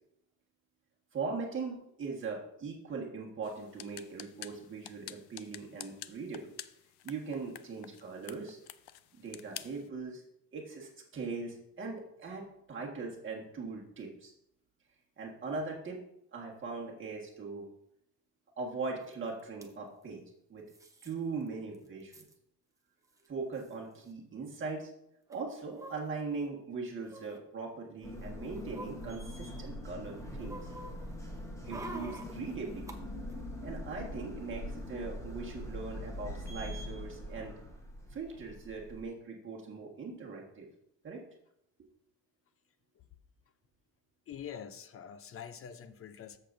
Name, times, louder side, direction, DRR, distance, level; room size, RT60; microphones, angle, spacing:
voice 1, 1.1-6.6 7.0-8.6 9.1-10.2 10.5-14.3 15.2-16.0 16.3-17.7 18.6-20.2 20.5-20.7 21.0-22.2 23.3-24.9 25.3-30.7 31.6-33.0 33.6-37.6 38.1-40.7 41.0-41.2, right 4 dB, 30° right, 1.6 m, -40 dB
sound 1, 3.4-9.9, left 13 dB, 85° left, 0.6 m, -49 dB
sound 2, 19.1-19.2 19.4-19.7 20.7-21.1 21.5-21.6 21.7-22.3 23.2-23.3 23.5-23.7 25.3-26.4 27.0-27.4 28.0-29.7 30.0-33.0 33.3-33.4, right 2 dB, 10° right, 0.8 m, -48 dB
sound 3, 28.0-39.0, left 1 dB, 10° left, 1.1 m, -43 dB
voice 2, 44.3-46.4, left 8 dB, 35° left, 0.6 m, -45 dB
13.5 x 6.9 x 2.6 m
cardioid pair, 150°, 37 cm